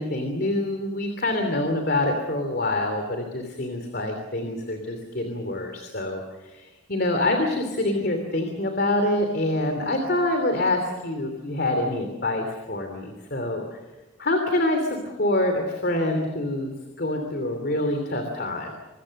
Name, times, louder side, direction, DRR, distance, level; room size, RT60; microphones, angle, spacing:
voice 1, 0.0-13.8 14.2-18.7, left 1 dB, 50° left, 5 dB, 3.0 m, -26 dB
26.5 x 22.0 x 6.6 m, 1.1 s
head